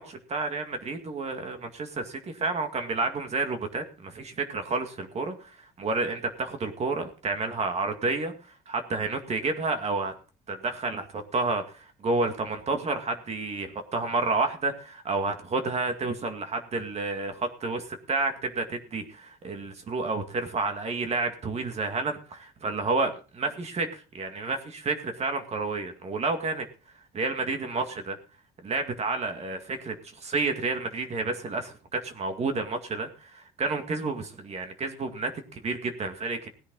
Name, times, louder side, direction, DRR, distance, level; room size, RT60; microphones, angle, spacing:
voice 1, 0.0-8.3 8.7-10.1 10.5-26.7 27.1-28.2 28.6-29.9 30.2-36.5, right 3 dB, 40° right, 6 dB, 2.1 m, -30 dB
17.0 x 10.0 x 4.0 m, 0.36 s
cardioid pair, 110°, 17 cm